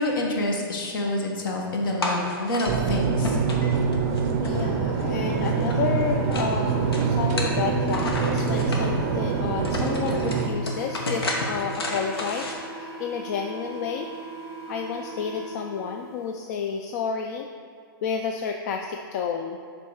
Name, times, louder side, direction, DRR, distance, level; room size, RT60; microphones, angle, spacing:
voice 1, 0.0-3.4, left 1 dB, 60° left, 0 dB, 1.4 m, -27 dB
sound 1, 2.0-2.7 3.2-5.0 5.3-6.6 6.9-8.8 9.3-9.4 9.7-12.5, left 2 dB, 85° left, 1.2 m, -31 dB
sound 2, 2.7-10.5, right 5 dB, 40° right, 0.5 m, -25 dB
sound 3, 4.0-16.1, right 3 dB, 30° left, 1.6 m, -40 dB
voice 2, 4.4-14.1 14.7-17.5 18.0-19.6, left 6 dB, 45° left, 4 dB, 0.4 m, -30 dB
6.8 x 3.6 x 4.7 m, 2.3 s
hypercardioid pair, 140°, 13 cm